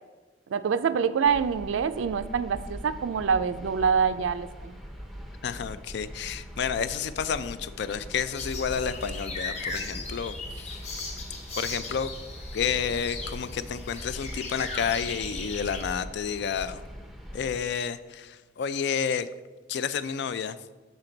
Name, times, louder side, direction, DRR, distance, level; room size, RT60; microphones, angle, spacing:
voice 1, 0.5-4.8, right 6 dB, 80° right, 13 dB, 0.4 m, -26 dB
sound 1, 1.3-17.6, equal, ahead, 0.5 m, -42 dB
voice 2, 5.4-10.8 11.6-12.1 12.5-16.8 17.3-19.3 19.7-20.6, left 7 dB, 60° left, 14 dB, 0.3 m, -30 dB
sound 2, 8.4-15.8, left 3 dB, 35° left, 0.8 m, -38 dB
6.7 x 5.9 x 3.9 m, 1.3 s
head